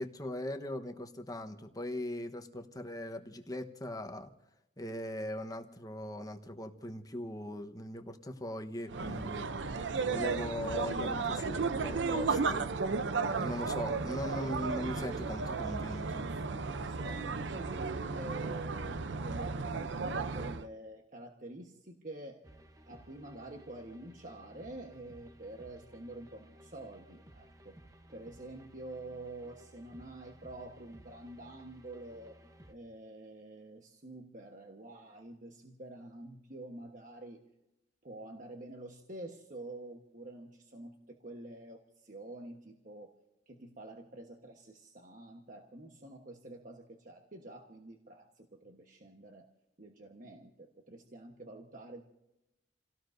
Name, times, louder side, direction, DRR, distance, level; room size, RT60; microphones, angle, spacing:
voice 1, 0.0-4.3 4.8-9.5 10.0-12.7 13.3-16.3, left 1 dB, 20° left, 5 dB, 1.1 m, -40 dB
sound 1, 8.9-20.7, right 4 dB, 80° right, 0.6 m, -34 dB
voice 2, 16.8-22.5 22.9-27.8 28.1-32.4 32.7-37.4 38.0-43.1 43.5-49.5 49.8-52.0, right 2 dB, 45° right, 2 dB, 1.3 m, -48 dB
sound 2, 22.4-32.7, equal, 20° right, 0.9 m, -57 dB
29.5 x 18.0 x 2.7 m, 0.92 s
head